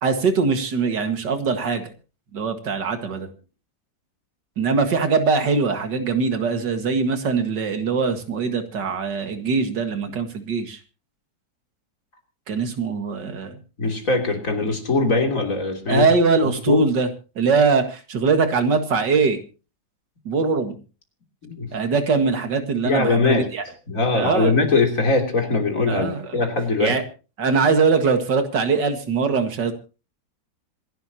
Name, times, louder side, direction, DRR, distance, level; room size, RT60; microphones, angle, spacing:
voice 1, 0.0-1.9 2.3-3.3 4.6-10.8 12.5-13.6 15.9-17.1 17.4-19.4 20.3-20.8 21.7-23.6 24.1-24.5 25.9-26.2 26.8-27.0 27.4-29.7, right 4 dB, 80° right, 7 dB, 2.5 m, -22 dB
voice 2, 13.8-16.1 16.7-16.8 21.4-21.7 22.8-23.5 23.9-27.0, left 3 dB, 50° left, 2 dB, 3.7 m, -21 dB
26.0 x 11.5 x 2.9 m, 0.34 s
omnidirectional pair, 1.8 m